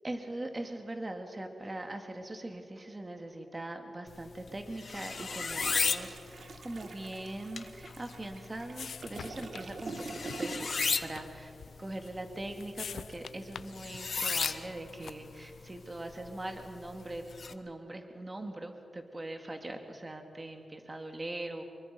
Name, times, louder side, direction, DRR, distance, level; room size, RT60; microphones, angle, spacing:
voice 1, 0.0-21.6, right 1 dB, 25° right, 5 dB, 2.0 m, -41 dB
sound 1, 4.1-17.5, left 5 dB, 55° left, 1.0 m, -37 dB
Toilet flush, 5.0-11.0 11.2-11.5, right 3 dB, 65° right, 1.6 m, -45 dB
sound 2, 8.0-15.5, left 7 dB, 80° left, 0.4 m, -48 dB
26.0 x 23.0 x 5.4 m, 2.6 s
wide cardioid pair, 100°, 0 cm